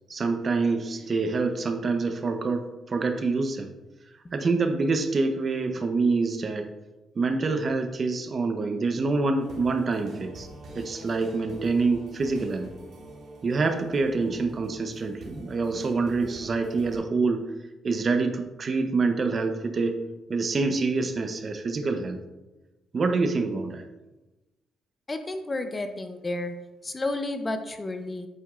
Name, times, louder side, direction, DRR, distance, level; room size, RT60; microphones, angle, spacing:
voice 1, 0.1-3.7 4.3-6.7 7.2-10.5 10.7-12.7 13.4-17.5 17.8-20.0 20.3-22.2 22.9-23.9, right 3 dB, 40° right, 7 dB, 0.8 m, -26 dB
sound 1, 9.4-17.0, right 2 dB, 65° right, 2.1 m, -44 dB
voice 2, 25.1-26.5 26.8-28.3, left 2 dB, 25° left, 8 dB, 0.6 m, -31 dB
8.7 x 6.9 x 2.4 m, 1.1 s
cardioid pair, 90°, 0 cm